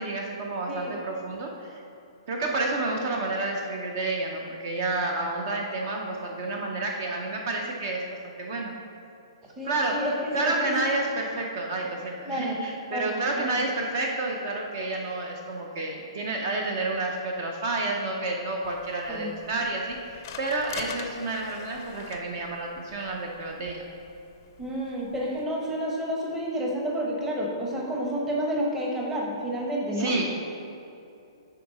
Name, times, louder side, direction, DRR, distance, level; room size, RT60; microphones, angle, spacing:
voice 1, 0.0-1.8 2.3-8.7 9.6-10.1 10.3-23.8 30.0-30.4, right 2 dB, 35° right, 1 dB, 0.7 m, -30 dB
voice 2, 9.6-10.8 12.3-12.6 12.9-13.6 19.1-19.3 24.6-30.1, equal, 10° right, -2 dB, 0.9 m, -30 dB
sound 1, 18.6-25.4, left 7 dB, 35° left, 0.6 m, -45 dB
8.4 x 4.8 x 5.3 m, 2.7 s
hypercardioid pair, 170°, 3 cm